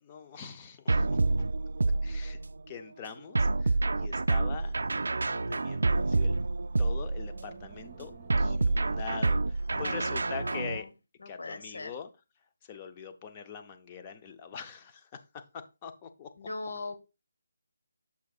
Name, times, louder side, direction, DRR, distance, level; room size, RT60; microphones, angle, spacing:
voice 1, 0.0-1.4 2.0-2.4 2.7-4.8 5.3-6.4 6.8-8.1 8.4-10.9 11.3-12.1 12.6-15.2 15.5-16.3, left 7 dB, 15° left, 8 dB, 0.5 m, -43 dB
sound 1, 0.9-2.6 3.3-7.5 8.3-10.8, right 3 dB, 70° right, 0.3 m, -28 dB
Wind, 4.5-10.4, right 4 dB, 25° right, 1.1 m, -53 dB
voice 2, 9.7-10.8 11.2-11.9 16.4-16.9, left 3 dB, 70° left, 9 dB, 1.3 m, -40 dB
7.7 x 6.9 x 2.4 m, 0.27 s
hypercardioid pair, 180°, 0 cm